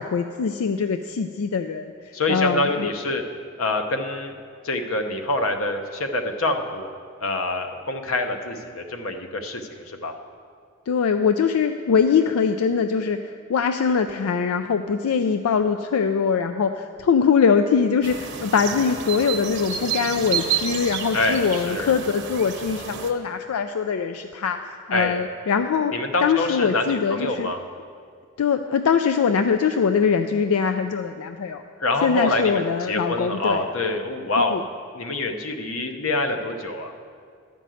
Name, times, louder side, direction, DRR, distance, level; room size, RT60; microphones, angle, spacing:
voice 1, 0.0-2.9 10.9-25.9 26.2-27.5 28.4-31.6 32.0-33.7 34.5-34.6, left 6 dB, 90° left, 8 dB, 0.4 m, -22 dB
voice 2, 2.1-3.2 3.6-4.3 4.6-6.9 7.2-10.1 21.1-21.9 24.9-25.2 25.9-27.6 31.8-34.6 34.9-36.9, left 2 dB, 70° left, 6 dB, 0.8 m, -26 dB
sound 1, 18.0-23.1, right 7 dB, 55° right, 0.9 m, -30 dB
11.0 x 5.3 x 7.6 m, 2.2 s
head